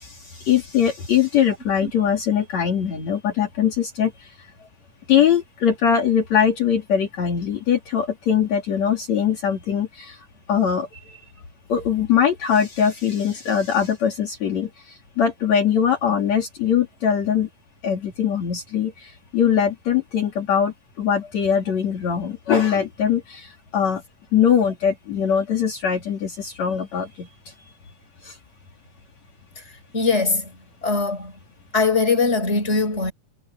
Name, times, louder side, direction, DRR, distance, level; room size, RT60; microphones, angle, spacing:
voice 1, 0.5-4.1 5.1-10.1 10.5-10.9 11.7-14.7 15.2-17.5 17.8-18.9 19.3-23.5 23.7-24.0 24.3-27.3, left 8 dB, 60° left, 3.8 m, -21 dB
voice 2, 29.9-30.5 30.8-31.3 31.7-33.1, left 4 dB, 20° left, 5.4 m, -21 dB
omnidirectional pair, 3.6 m